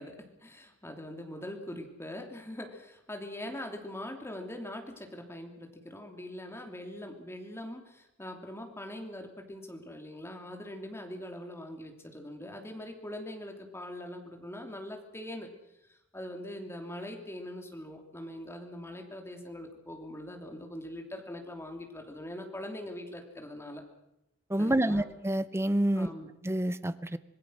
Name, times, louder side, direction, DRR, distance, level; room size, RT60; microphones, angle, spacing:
voice 1, 0.0-15.5 15.9-23.8 24.6-25.1 25.9-26.3, left 1 dB, 10° left, 3 dB, 3.0 m, -42 dB
voice 2, 24.5-26.1 26.4-27.2, right 1 dB, 10° right, 13 dB, 0.8 m, -28 dB
26.0 x 19.0 x 6.4 m, 0.89 s
head